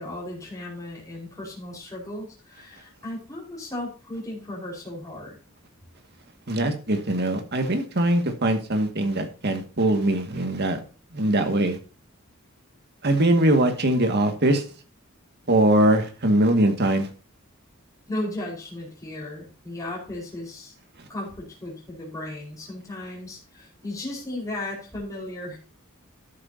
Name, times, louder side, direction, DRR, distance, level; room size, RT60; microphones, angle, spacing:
voice 1, 0.0-5.3 18.1-20.7 21.1-25.6, left 1 dB, 15° left, -4 dB, 4.8 m, -35 dB
voice 2, 6.5-10.8 11.1-11.8 13.0-14.6 15.5-17.1, right 1 dB, 55° right, 6 dB, 2.0 m, -21 dB
12.5 x 9.7 x 2.8 m, 0.36 s
head